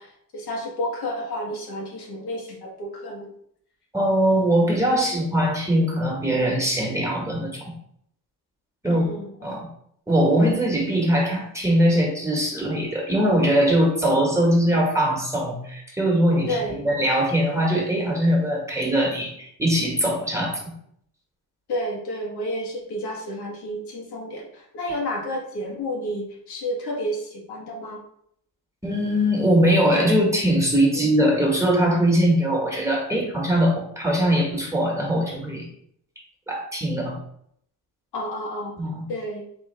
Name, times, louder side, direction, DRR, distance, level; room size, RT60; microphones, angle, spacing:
voice 1, 0.0-3.3 8.8-9.6 16.5-16.8 21.7-28.0 30.9-31.1 38.1-38.7 39.1-39.4, equal, 75° left, -2 dB, 1.6 m, -31 dB
voice 2, 3.9-7.7 8.8-9.0 9.4-9.7 10.1-20.6 28.8-35.6 36.5-37.2 38.8-39.0, equal, 5° right, -1 dB, 1.5 m, -21 dB
4.1 x 3.4 x 3.4 m, 0.68 s
cardioid pair, 70°, 39 cm